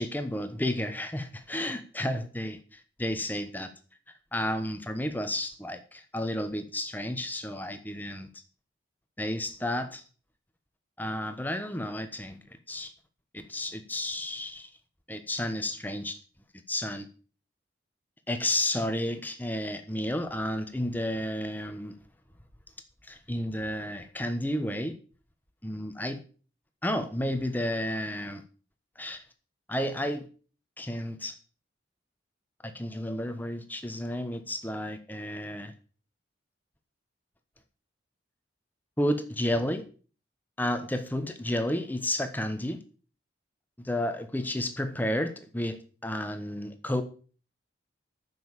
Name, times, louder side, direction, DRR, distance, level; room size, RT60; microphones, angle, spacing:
voice 1, 0.0-3.7 4.3-8.3 9.2-10.0 11.0-12.9 13.3-14.7 15.1-16.2 16.7-17.1 18.3-22.0 23.0-24.9 25.6-26.2 26.8-28.4 29.0-29.2 29.7-30.3 30.8-31.4 32.6-35.7 39.0-39.8 40.6-42.8 43.8-47.0, left 1 dB, 10° left, 8 dB, 1.1 m, -32 dB
10.0 x 7.0 x 7.3 m, 0.39 s
head